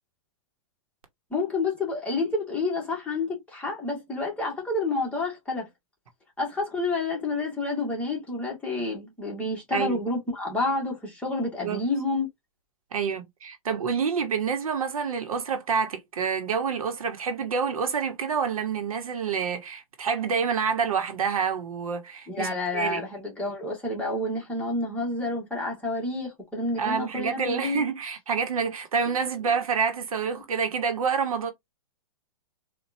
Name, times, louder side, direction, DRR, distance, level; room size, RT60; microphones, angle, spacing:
voice 1, 1.3-5.7 6.4-12.3 22.3-27.8, left 2 dB, 5° left, 1.6 m, -29 dB
voice 2, 12.9-23.0 26.8-31.5, right 6 dB, 80° right, 1.1 m, -28 dB
4.2 x 2.5 x 2.6 m
hypercardioid pair, 140°, 18 cm